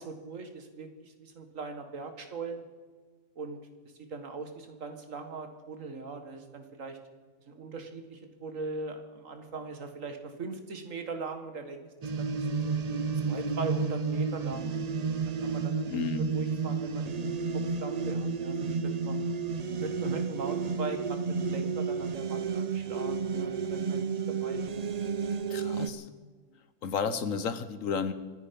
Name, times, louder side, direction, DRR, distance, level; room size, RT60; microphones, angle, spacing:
voice 1, 0.0-2.6 3.4-3.6 4.1-7.0 7.5-12.8 13.2-14.8 15.4-19.2 19.8-24.7, right 4 dB, 80° right, 7 dB, 2.0 m, -40 dB
sound 1, 12.0-25.9, right 5 dB, 45° right, 0.6 m, -31 dB
voice 2, 15.9-16.3 25.5-26.1 26.8-28.1, left 6 dB, 85° left, 12 dB, 1.5 m, -32 dB
25.5 x 10.5 x 5.3 m, 1.4 s
omnidirectional pair, 1.3 m